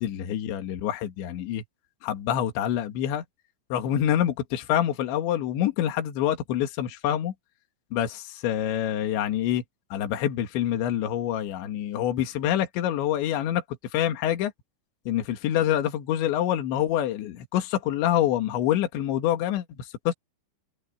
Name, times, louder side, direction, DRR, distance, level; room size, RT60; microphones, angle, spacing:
voice 1, 0.0-1.6 2.0-3.2 3.7-7.3 7.9-9.6 9.9-13.6 13.9-14.5 15.1-20.1, left 11 dB, 65° left, 4.1 m, -26 dB
omnidirectional pair, 6.0 m